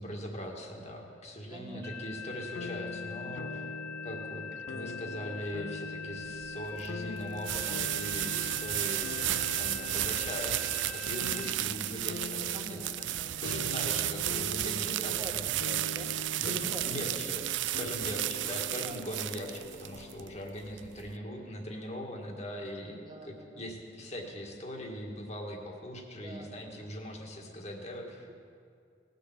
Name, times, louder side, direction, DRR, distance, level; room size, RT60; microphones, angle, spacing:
voice 1, 0.0-3.7 4.0-9.1 9.6-12.9 13.2-15.4 16.4-22.9 23.2-28.3, equal, 40° left, 1 dB, 1.9 m, -41 dB
voice 2, 1.5-2.4 9.7-10.0 12.4-13.7 14.6-17.5 18.7-19.0 22.8-23.7 26.1-26.8 28.1-28.3, right 1 dB, 25° right, 1 dB, 1.6 m, -47 dB
sound 1, 1.8-11.5, left 6 dB, 5° left, 1.5 m, -43 dB
sound 2, 2.5-20.4, left 3 dB, 80° left, 0.4 m, -44 dB
sound 3, 6.3-21.1, right 14 dB, 85° right, 0.4 m, -33 dB
19.0 x 6.8 x 8.7 m, 2.4 s
head